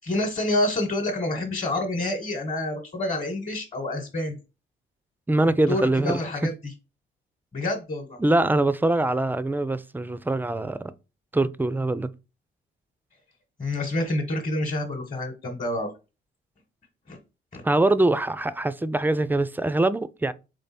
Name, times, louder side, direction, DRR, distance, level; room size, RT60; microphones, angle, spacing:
voice 1, 0.0-4.4 5.4-6.7 7.5-8.2 13.6-15.9 17.1-17.2 17.5-17.6, left 1 dB, 35° left, 1.0 m, -28 dB
voice 2, 5.3-6.2 8.2-10.9 11.3-12.1 17.6-20.3, right 2 dB, 10° right, 0.3 m, -23 dB
3.7 x 3.4 x 4.1 m
cardioid pair, 90°, 20 cm